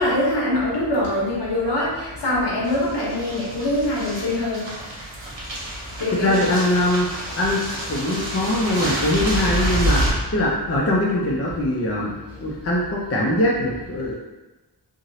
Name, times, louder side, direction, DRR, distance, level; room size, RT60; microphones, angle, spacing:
voice 1, 0.0-4.7 6.0-6.5, left 1 dB, 65° left, -6 dB, 1.1 m, -23 dB
sound 1, 2.6-10.1, equal, 75° right, 1.0 m, -28 dB
voice 2, 6.1-7.1 7.4-7.6 7.9-14.1, left 1 dB, 35° left, -4 dB, 0.5 m, -22 dB
3.0 x 2.6 x 2.7 m, 1.1 s
wide cardioid pair, 50°, 43 cm